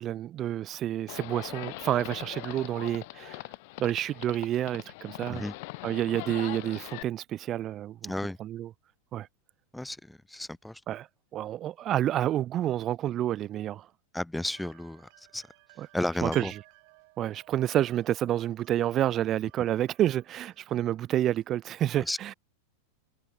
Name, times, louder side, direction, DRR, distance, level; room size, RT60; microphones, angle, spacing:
voice 1, 0.0-3.4 3.8-5.4 5.8-8.1 8.4-8.7 9.1-9.3 10.9-11.1 11.3-13.9 15.8-15.9 16.2-16.5 17.2-22.3, right 12 dB, 30° right, 0.5 m, -29 dB
Livestock farm animals working animals, 1.1-7.0, left 25 dB, 50° left, 0.7 m, -41 dB
voice 2, 8.0-8.4 9.7-10.8 14.1-15.4 15.9-16.5 22.1-22.2, left 1 dB, 5° left, 1.0 m, -33 dB
sound 1, 14.5-21.5, right 30 dB, 45° right, 7.3 m, -56 dB
figure-of-eight pair, 90°, 0 cm